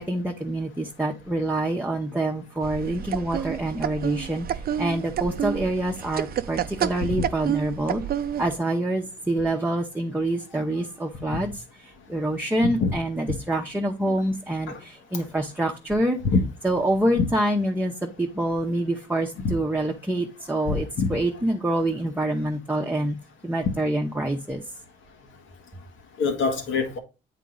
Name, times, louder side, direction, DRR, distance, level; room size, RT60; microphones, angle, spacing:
voice 1, 0.0-8.0 8.4-16.2 16.6-23.2 23.4-24.6, right 1 dB, 10° right, 0.9 m, -26 dB
sound 1, 2.6-8.6, right 9 dB, 50° right, 0.5 m, -30 dB
voice 2, 20.7-21.1 26.2-27.0, left 4 dB, 80° left, 1.6 m, -24 dB
8.2 x 4.1 x 3.9 m
cardioid pair, 90°, 20 cm